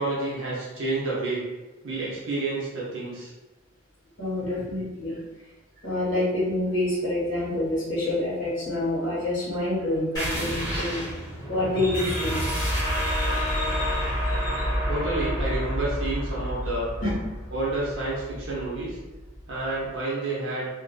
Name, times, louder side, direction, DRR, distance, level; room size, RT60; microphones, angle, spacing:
voice 1, 0.0-1.4 1.8-3.3 14.9-16.9 17.5-19.0 19.5-20.7, right 2 dB, 70° right, -6 dB, 0.7 m, -29 dB
voice 2, 4.2-5.2 5.8-11.1 11.5-14.8 17.0-17.2, left 1 dB, 65° left, -12 dB, 1.2 m, -28 dB
sound 1, 10.1-19.4, equal, 15° left, 1.0 m, -29 dB
2.5 x 2.4 x 2.2 m, 1.1 s
head